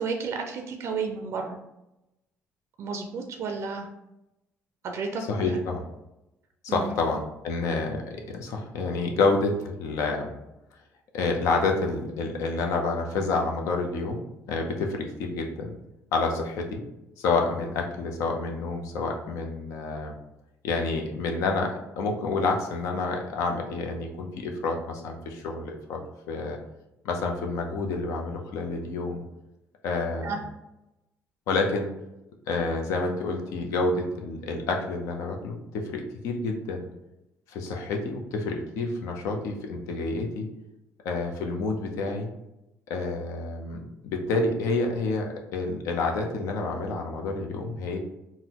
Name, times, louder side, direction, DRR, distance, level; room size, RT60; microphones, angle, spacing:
voice 1, 0.0-1.6 2.8-3.9 4.8-5.6 6.7-6.9 30.2-30.4, right 4 dB, 60° right, 4 dB, 0.4 m, -32 dB
voice 2, 5.3-5.8 6.6-10.3 11.1-14.2 14.5-15.7 16.1-16.8 17.2-20.1 20.6-26.0 26.3-26.6 27.0-29.2 29.8-30.4 31.5-31.9 32.5-36.9 37.5-40.5 41.0-42.3 42.9-43.8 44.0-48.0, left 3 dB, 80° left, 3 dB, 0.6 m, -28 dB
3.9 x 2.1 x 2.9 m, 0.91 s
cardioid pair, 90°, 5 cm